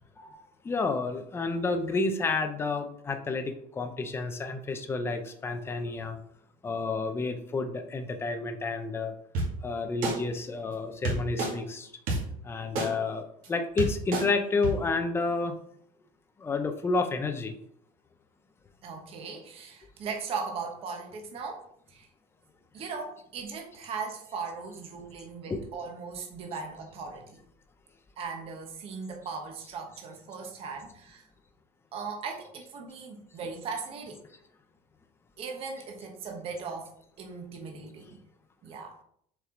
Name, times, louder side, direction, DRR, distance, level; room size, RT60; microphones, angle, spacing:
voice 1, 0.6-6.2 6.6-9.1 9.6-11.9 12.5-13.2 13.5-15.5 16.4-17.5 25.5-25.6, left 3 dB, 15° left, 7 dB, 0.6 m, -30 dB
sound 1, 9.3-9.5 10.0-10.1 11.0-11.5 12.1-12.2 12.7-12.9 13.4-13.5 13.8-14.2 14.6-14.7, right 2 dB, 60° right, 2.2 m, -28 dB
voice 2, 18.8-22.1 22.7-27.4 28.2-31.2 31.9-34.2 35.4-38.2 38.6-38.9, right 5 dB, 35° right, 2 dB, 1.2 m, -38 dB
6.7 x 4.6 x 3.8 m, 0.67 s
cardioid pair, 165°, 16 cm